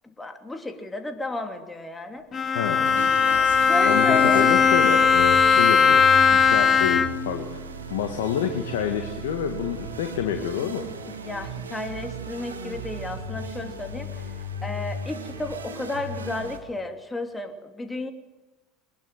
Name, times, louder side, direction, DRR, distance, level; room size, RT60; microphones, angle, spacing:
voice 1, 0.2-2.3 3.6-4.4 10.6-10.9 11.2-14.2 14.6-18.1, left 2 dB, 15° left, 6 dB, 2.9 m, -32 dB
Bowed string instrument, 2.3-7.4, left 6 dB, 35° left, 2.0 m, -18 dB
voice 2, 2.5-2.9 3.8-6.0 6.3-7.6 7.9-10.8, left 8 dB, 70° left, 5 dB, 1.9 m, -28 dB
sound 1, 2.8-16.6, right 1 dB, 85° right, 2.4 m, -36 dB
22.5 x 20.5 x 7.7 m, 1.2 s
figure-of-eight pair, 70°, 0 cm